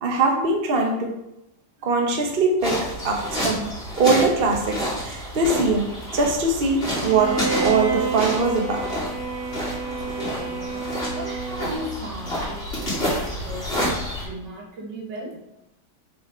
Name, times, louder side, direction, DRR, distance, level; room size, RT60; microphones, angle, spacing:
voice 1, 0.0-1.1 1.8-3.7 4.0-8.9, right 3 dB, 35° right, 1 dB, 1.1 m, -22 dB
sound 1, 2.6-14.2, equal, 35° left, 3.0 m, -29 dB
Bowed string instrument, 6.9-12.0, right 4 dB, 70° right, 2.0 m, -29 dB
voice 2, 9.7-10.8 11.1-15.4, right 1 dB, 90° right, -1 dB, 2.2 m, -37 dB
6.7 x 5.0 x 4.4 m, 0.83 s
omnidirectional pair, 1.8 m